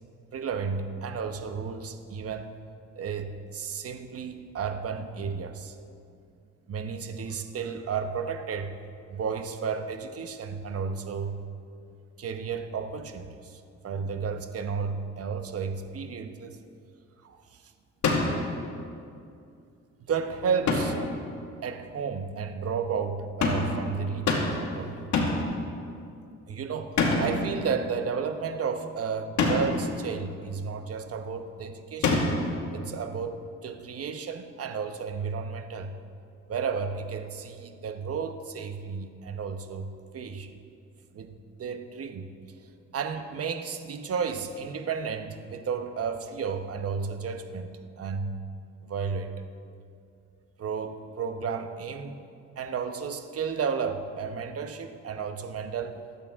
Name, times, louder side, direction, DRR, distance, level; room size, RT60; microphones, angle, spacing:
voice 1, 0.3-2.6 3.0-5.8 6.7-8.8 9.1-11.4 12.2-16.6 17.2-17.6 20.1-21.0 21.6-25.3 26.5-32.4 32.7-36.0 36.5-40.6 41.1-42.3 42.9-48.4 48.8-49.3 50.6-52.2 52.6-56.0, right 6 dB, 50° right, 7 dB, 1.1 m, -33 dB
sound 1, 18.0-18.5 20.7-21.1 23.4-23.8 24.3-24.7 25.1-25.5 27.0-27.5 29.4-29.8 32.0-32.5, left 3 dB, 65° left, 2.1 m, -25 dB
23.0 x 8.7 x 3.7 m, 2.4 s
cardioid pair, 90°, 30 cm